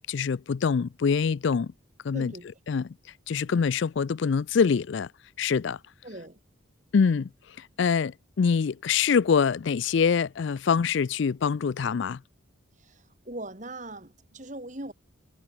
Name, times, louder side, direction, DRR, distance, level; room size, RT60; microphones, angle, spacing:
voice 1, 0.1-1.7 2.0-2.3 2.7-2.9 3.3-5.1 5.4-5.8 6.9-7.3 7.8-8.1 8.4-12.2, left 6 dB, 60° left, 0.4 m, -24 dB
voice 2, 2.1-2.5 6.0-6.4 12.8-14.9, right 1 dB, 35° right, 3.1 m, -40 dB
head